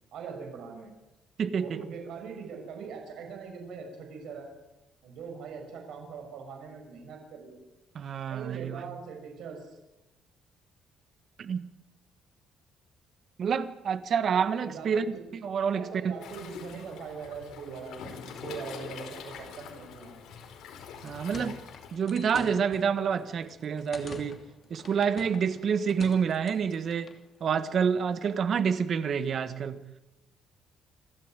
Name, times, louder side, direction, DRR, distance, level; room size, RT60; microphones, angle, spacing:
voice 1, 0.1-0.9 1.6-4.5 5.0-7.6 8.3-9.8 14.6-15.2 15.7-20.3, right 5 dB, 70° right, 6.3 m, -42 dB
voice 2, 1.4-1.8 7.9-8.9 11.4-11.7 13.4-15.1 15.4-16.1 21.0-21.6 21.9-24.4 24.7-27.1 27.4-29.8, right 7 dB, 45° right, 1.6 m, -28 dB
Waves surf, 16.2-22.0, left 6 dB, 75° left, 4.5 m, -44 dB
sound 1, 21.1-27.2, left 4 dB, 35° left, 2.8 m, -47 dB
28.0 x 13.0 x 9.2 m
cardioid pair, 140°, 0 cm